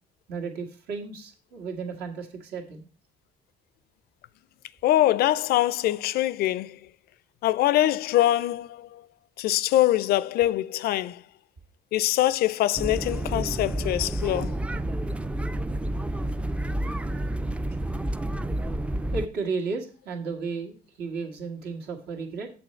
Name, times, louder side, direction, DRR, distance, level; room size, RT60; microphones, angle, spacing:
voice 1, 0.3-2.9 19.1-22.5, right 4 dB, 75° right, 2.0 m, -33 dB
voice 2, 4.8-6.8 7.4-9.0 9.4-11.2 11.9-14.5, left 14 dB, 65° left, 0.4 m, -23 dB
sound 1, 12.8-19.3, right 1 dB, 5° right, 0.3 m, -29 dB
7.1 x 6.9 x 4.4 m
cardioid pair, 110°, 17 cm